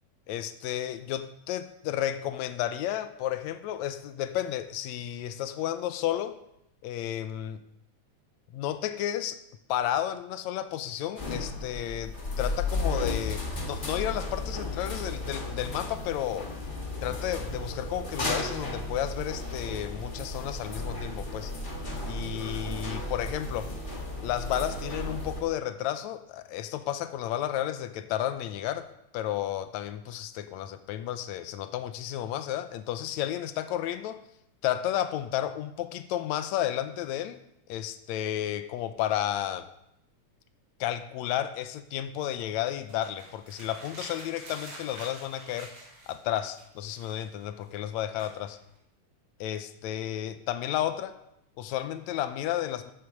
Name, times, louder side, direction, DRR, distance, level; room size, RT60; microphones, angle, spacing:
voice 1, 0.3-6.4 6.8-7.6 8.5-9.4 9.7-16.5 17.0-21.5 22.1-23.7 24.2-28.9 29.1-34.2 34.6-37.4 37.7-39.7 40.8-45.7 46.1-48.6 49.4-51.1 51.6-52.9, left 11 dB, 75° left, 10 dB, 1.8 m, -32 dB
sound 1, 11.2-25.4, left 2 dB, 40° left, 0.6 m, -34 dB
sound 2, 42.7-46.3 46.5-48.8, right 1 dB, 40° right, 4.2 m, -47 dB
14.5 x 8.1 x 5.3 m, 0.80 s
omnidirectional pair, 3.7 m